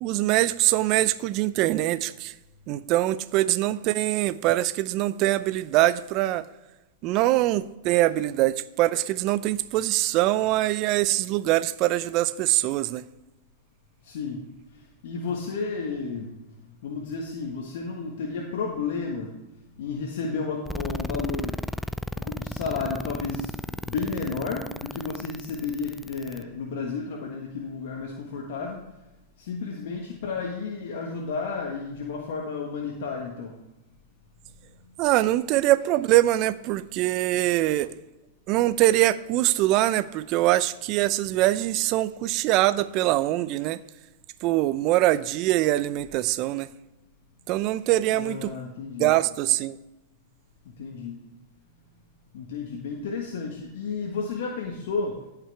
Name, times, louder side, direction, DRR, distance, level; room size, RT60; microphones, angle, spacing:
voice 1, 0.0-2.3 2.7-6.4 7.0-13.0 35.0-37.9 38.5-43.8 44.4-46.7 47.5-48.5 49.0-49.8, right 15 dB, 45° right, 0.5 m, -23 dB
voice 2, 14.0-14.5 15.0-16.3 16.8-19.3 19.8-21.6 22.2-28.8 29.4-33.6 48.2-49.1 50.8-51.2 52.3-55.2, left 4 dB, 70° left, 1.5 m, -32 dB
sound 1, 20.7-26.4, left 1 dB, 5° left, 0.3 m, -34 dB
15.0 x 5.9 x 3.4 m
hypercardioid pair, 115°, 0 cm